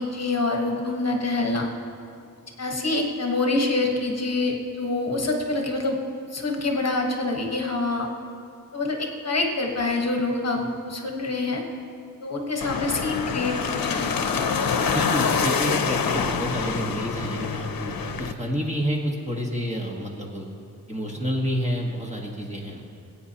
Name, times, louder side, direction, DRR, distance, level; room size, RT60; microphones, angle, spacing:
voice 1, 0.0-1.7 2.6-6.0 6.3-8.1 8.7-11.6 12.2-14.1, left 2 dB, 45° left, 1 dB, 1.2 m, -26 dB
sound 1, 12.6-18.3, left 6 dB, 70° left, 0.7 m, -26 dB
voice 2, 14.9-20.5 20.9-22.8, equal, 20° right, -1 dB, 1.4 m, -29 dB
21.0 x 8.6 x 2.9 m, 2.5 s
wide cardioid pair, 135°, 36 cm